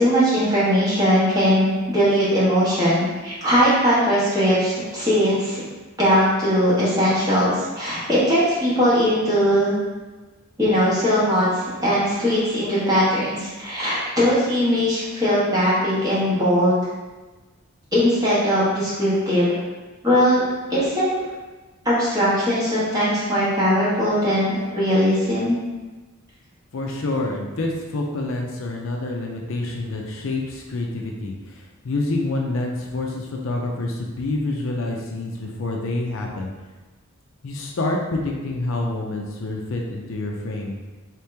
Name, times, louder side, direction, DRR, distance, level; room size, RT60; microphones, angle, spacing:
voice 1, 0.0-5.6 6.0-9.7 10.6-16.7 17.9-19.4 20.0-20.4 20.7-21.1 21.8-25.6, equal, 15° right, -10 dB, 1.3 m, -20 dB
voice 2, 26.7-36.5 37.4-40.8, left 2 dB, 60° left, 0 dB, 0.5 m, -27 dB
3.6 x 2.9 x 3.3 m, 1.2 s
head